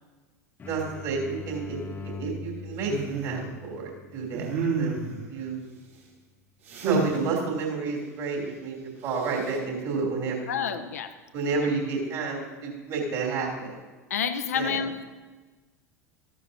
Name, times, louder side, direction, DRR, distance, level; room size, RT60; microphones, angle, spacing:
sound 1, 0.6-6.1, left 3 dB, 20° left, 0.7 m, -43 dB
voice 1, 0.7-1.8 2.0-4.5 4.8-5.0 5.3-5.7 6.7-10.8 11.3-13.8 14.5-14.8, right 4 dB, 45° right, -2 dB, 3.0 m, -30 dB
sound 2, 2.9-3.4 4.3-5.2 6.7-7.2 9.1-9.6, right 4 dB, 60° right, 2.9 m, -29 dB
voice 2, 10.5-11.2 14.1-14.9, left 7 dB, 65° left, 9 dB, 0.6 m, -28 dB
14.0 x 10.0 x 2.7 m, 1.3 s
figure-of-eight pair, 75°, 9 cm